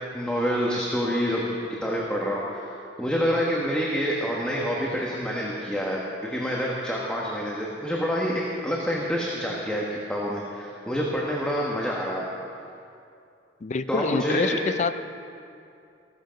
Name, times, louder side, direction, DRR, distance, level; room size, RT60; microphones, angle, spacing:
voice 1, 0.1-2.7 3.0-9.8 10.1-12.3 13.9-14.6, equal, 5° left, -4 dB, 1.3 m, -27 dB
voice 2, 13.6-15.0, left 4 dB, 40° left, 12 dB, 0.4 m, -26 dB
15.5 x 13.0 x 5.2 m, 2.5 s
head